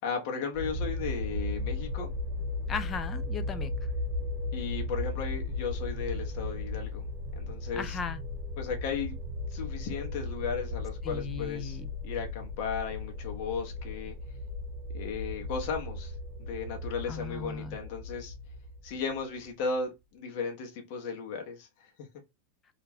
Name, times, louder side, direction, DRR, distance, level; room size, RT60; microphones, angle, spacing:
voice 1, 0.0-2.1 4.5-7.0 7.4-8.0 8.6-9.2 9.5-11.8 12.0-14.1 14.9-16.1 16.4-18.3 18.8-21.9, left 5 dB, 50° left, 0.7 m, -35 dB
sound 1, 0.5-19.4, left 2 dB, 35° right, 1.0 m, -36 dB
voice 2, 2.7-3.7 7.7-8.2 11.0-11.9 17.1-17.8, left 5 dB, 20° left, 0.3 m, -37 dB
2.4 x 2.1 x 3.3 m
supercardioid pair, 140°, 0 cm